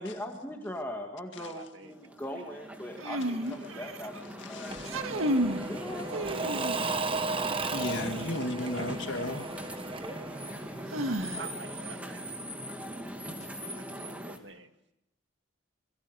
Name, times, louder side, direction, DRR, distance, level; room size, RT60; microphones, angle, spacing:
voice 1, 0.0-4.8 5.6-6.6 10.8-11.6, left 1 dB, 10° left, 1.9 m, -41 dB
voice 2, 1.3-2.0 11.4-12.4 13.6-14.7, right 4 dB, 60° right, 2.1 m, -48 dB
sound 1, 1.9-14.4, equal, 5° right, 2.5 m, -41 dB
sound 2, 3.0-4.2 4.8-5.7 6.1-7.0 9.0-9.1 10.9-11.8, right 1 dB, 90° right, 1.9 m, -32 dB
voice 3, 4.5-5.0 6.7-6.8 7.7-9.5, left 1 dB, 65° left, 2.1 m, -34 dB
Engine / Mechanisms / Drill, 4.7-11.4, right 3 dB, 25° right, 1.1 m, -35 dB
27.5 x 21.5 x 7.9 m
head